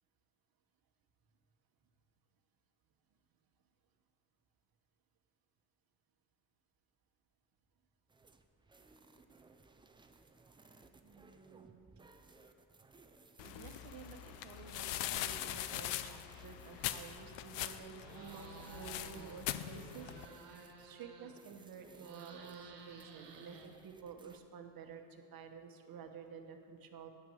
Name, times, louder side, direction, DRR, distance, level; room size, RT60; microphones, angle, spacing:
sound 1, 8.1-24.4, right 3 dB, 10° right, 0.4 m, -62 dB
voice 1, 11.0-11.9 13.4-27.1, right 6 dB, 55° right, 6 dB, 1.1 m, -52 dB
sound 2, 13.4-20.3, left 13 dB, 85° left, 0.6 m, -42 dB
sound 3, 18.0-19.4 19.7-21.5 21.9-24.1, right 4 dB, 80° right, 1.4 m, -54 dB
9.8 x 6.0 x 7.2 m, 2.5 s
cardioid pair, 105°, 43 cm